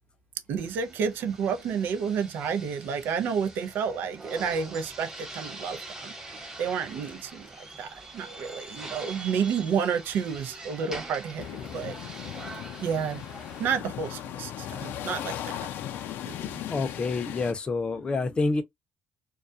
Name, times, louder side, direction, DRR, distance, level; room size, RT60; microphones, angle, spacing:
voice 1, 0.5-6.1 6.6-11.5 11.7-11.9 12.8-13.2 13.6-15.4 16.3-16.6, right 6 dB, 75° right, 0.5 m, -30 dB
sound 1, 0.6-13.8, right 2 dB, 15° right, 1.1 m, -44 dB
sound 2, 11.4-17.5, left 11 dB, 80° left, 0.4 m, -37 dB
voice 2, 16.7-18.6, left 3 dB, 30° left, 0.6 m, -28 dB
2.3 x 2.2 x 2.5 m
cardioid pair, 110°, 3 cm